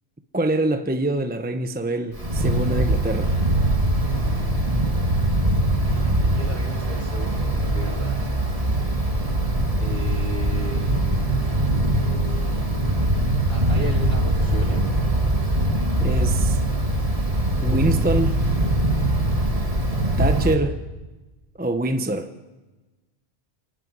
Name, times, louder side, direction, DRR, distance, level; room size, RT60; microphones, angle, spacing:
voice 1, 0.3-3.3 16.0-16.6 17.6-18.4 19.0-19.2 20.2-20.8 21.6-22.3, right 1 dB, 10° right, 0.9 m, -25 dB
Wind, 2.1-20.5, right 1 dB, 30° right, 2.2 m, -22 dB
voice 2, 5.9-8.3 9.8-12.6 13.5-14.9, equal, 60° right, 4.5 m, -37 dB
30.0 x 12.5 x 9.6 m
omnidirectional pair, 1.1 m